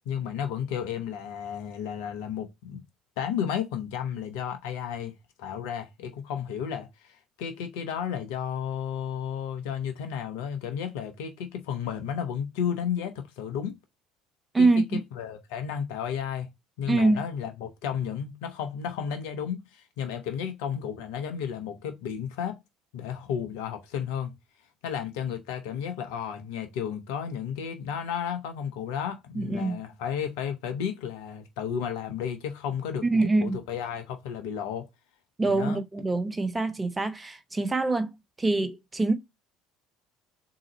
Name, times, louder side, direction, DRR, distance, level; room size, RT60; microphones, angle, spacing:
voice 1, 0.1-2.8 3.2-5.1 5.4-13.8 14.6-16.5 16.8-22.6 22.9-24.4 24.8-34.9 35.4-35.8, left 8 dB, 70° left, 0.8 m, -33 dB
voice 2, 14.5-15.0 16.9-17.2 29.3-29.8 33.0-33.6 35.4-38.1 38.4-39.1, right 3 dB, 20° right, 0.8 m, -24 dB
3.8 x 2.9 x 4.1 m
hypercardioid pair, 60°, 0 cm